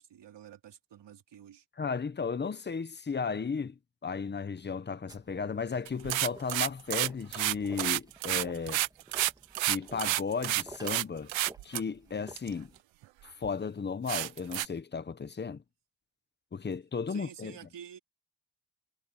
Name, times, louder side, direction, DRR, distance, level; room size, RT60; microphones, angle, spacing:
voice 1, 0.0-1.6 17.1-18.0, right 9 dB, 65° right, 4.0 m, -49 dB
voice 2, 1.8-8.8 9.6-11.3 11.6-12.7 13.4-15.6 16.5-17.5, left 5 dB, 25° left, 1.0 m, -34 dB
sound 1, 5.1-12.8, right 2 dB, 10° right, 1.7 m, -52 dB
sound 2, 5.9-11.0 11.3-11.8 12.4-12.5 13.0-13.1 13.4-13.5 14.1-14.7, right 16 dB, 85° right, 0.7 m, -29 dB
cardioid pair, 125°, 44 cm